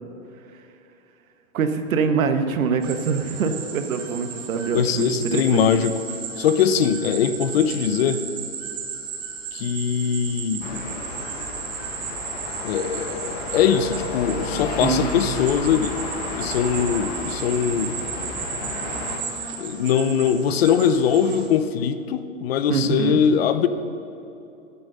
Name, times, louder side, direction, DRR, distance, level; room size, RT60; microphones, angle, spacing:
voice 1, 1.5-5.7 14.8-15.2 22.7-23.2, right 5 dB, 90° right, 7 dB, 1.2 m, -24 dB
sound 1, 2.8-21.5, right 6 dB, 15° right, 0.6 m, -34 dB
voice 2, 4.7-5.9 6.4-8.2 9.5-10.9 12.6-16.0 16.4-18.0 19.6-23.7, left 8 dB, 50° left, 11 dB, 0.7 m, -21 dB
sound 2, 10.6-19.2, left 3 dB, 20° left, 0.9 m, -32 dB
11.0 x 8.6 x 6.7 m, 2.8 s
supercardioid pair, 165°, 40 cm